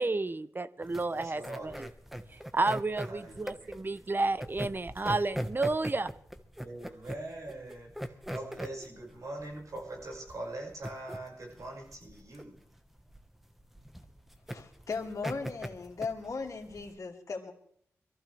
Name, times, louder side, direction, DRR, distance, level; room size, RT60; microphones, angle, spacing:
voice 1, 0.0-1.9 2.5-6.1, right 3 dB, 35° right, 15 dB, 0.7 m, -31 dB
sound 1, 0.8-17.0, equal, 5° right, 1.3 m, -41 dB
voice 2, 1.1-1.8 3.1-3.7 6.6-12.6, right 2 dB, 70° right, -2 dB, 5.7 m, -42 dB
voice 3, 14.5-17.5, left 4 dB, 70° left, 1 dB, 2.5 m, -37 dB
22.5 x 14.5 x 3.4 m, 0.65 s
cardioid pair, 45°, 6 cm